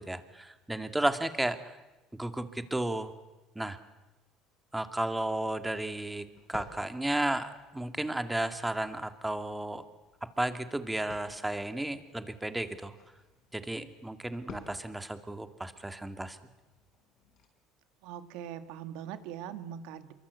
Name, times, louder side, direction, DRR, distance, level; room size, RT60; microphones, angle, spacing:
voice 1, 0.0-1.8 2.2-3.1 3.6-3.8 4.7-9.8 10.4-13.0 13.5-16.4, right 1 dB, 5° right, 9 dB, 2.1 m, -33 dB
sound 1, 5.1-17.5, left 5 dB, 55° left, 5.8 m, -56 dB
voice 2, 18.0-20.1, right 9 dB, 80° right, 10 dB, 2.2 m, -41 dB
27.0 x 24.0 x 8.2 m, 1.1 s
cardioid pair, 115°, 0 cm